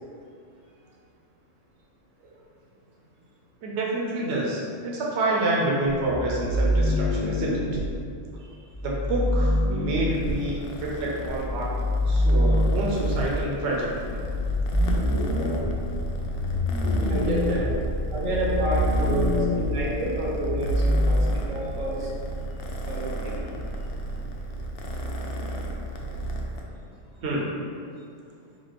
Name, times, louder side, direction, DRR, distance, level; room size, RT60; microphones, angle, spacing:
voice 1, 3.6-7.7 8.8-11.7 12.1-14.2 27.2-27.5, right 1 dB, 65° right, -3 dB, 0.9 m, -28 dB
sound 1, 5.9-7.8 8.7-10.3 11.2-13.3 14.0-21.2, left 1 dB, 75° left, 1.2 m, -25 dB
Purr, 10.1-26.6, right 1 dB, 60° left, 0.7 m, -33 dB
voice 2, 17.1-17.7 18.1-22.1 22.9-23.4, right 1 dB, 85° right, -4 dB, 1.3 m, -29 dB
4.3 x 2.6 x 4.5 m, 2.4 s
omnidirectional pair, 1.3 m